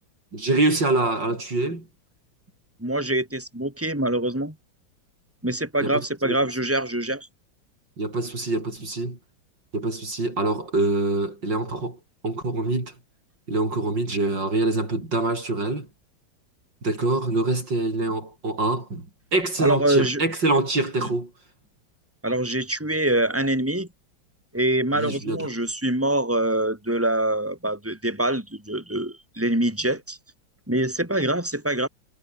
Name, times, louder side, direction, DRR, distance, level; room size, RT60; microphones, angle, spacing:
voice 1, 0.3-1.9 5.8-6.4 8.0-9.2 9.7-12.0 12.2-12.9 13.5-15.9 16.8-19.0 19.3-21.3 24.9-25.5, right 2 dB, 65° right, 7.2 m, -25 dB
voice 2, 2.8-4.6 5.4-7.3 19.6-20.2 21.0-21.1 22.2-23.9 24.5-30.2 30.7-31.9, right 1 dB, 5° right, 5.7 m, -24 dB
omnidirectional pair, 2.1 m